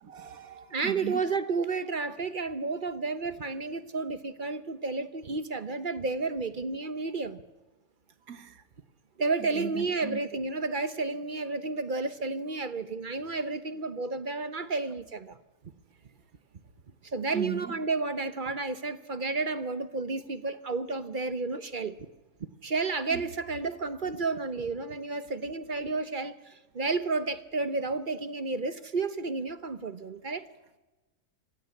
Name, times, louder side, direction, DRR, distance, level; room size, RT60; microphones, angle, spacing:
voice 1, 0.0-1.2 8.3-8.6 9.5-10.2 17.3-17.6 23.1-23.2, right 10 dB, 65° right, 1.8 m, -37 dB
voice 2, 0.7-7.4 9.2-15.4 17.0-22.0 22.6-30.4, right 3 dB, 40° right, 0.9 m, -31 dB
26.5 x 15.5 x 8.4 m
omnidirectional pair, 1.6 m